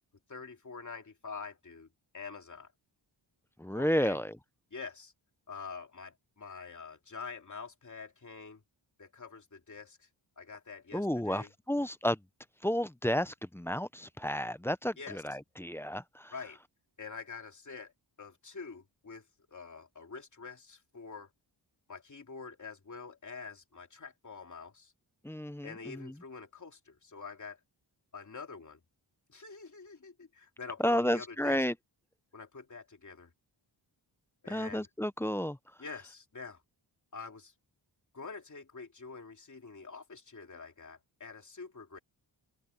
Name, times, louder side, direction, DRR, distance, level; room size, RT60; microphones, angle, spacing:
voice 1, 0.3-1.9 2.1-2.7 3.7-4.2 4.7-5.1 5.5-8.6 9.0-10.1 10.4-11.5 15.0-15.2 16.3-16.6 17.0-17.9 18.2-21.3 21.9-24.9 25.6-27.6 28.1-28.8 29.3-31.6 32.3-33.3 34.4-34.9 35.8-36.6 37.1-37.5 38.1-42.0, left 4 dB, 40° left, 3.0 m, -46 dB
voice 2, 3.6-4.3 10.9-12.2 12.6-16.3 25.2-26.1 30.8-31.7 34.5-35.6, equal, 5° left, 0.5 m, -32 dB
wide cardioid pair, 125°, 45 cm